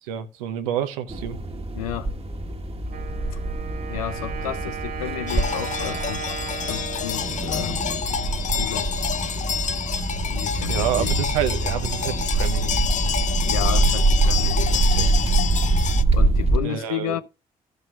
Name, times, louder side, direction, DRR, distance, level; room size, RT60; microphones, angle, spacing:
voice 1, 0.0-1.4 10.6-12.8 16.6-17.2, right 10 dB, 85° right, 0.9 m, -28 dB
sound 1, 1.1-16.6, right 2 dB, 35° right, 1.5 m, -24 dB
voice 2, 1.7-2.1 3.3-3.4 3.9-6.3 6.6-7.8 8.5-8.9 10.3-11.2 13.5-15.2 16.1-17.2, left 12 dB, 85° left, 0.6 m, -32 dB
Wind instrument woodwind instrument, 2.9-8.6, right 7 dB, 55° right, 2.0 m, -36 dB
sound 2, 5.3-16.0, left 8 dB, 45° left, 0.6 m, -28 dB
15.0 x 6.4 x 2.5 m
hypercardioid pair, 45°, 18 cm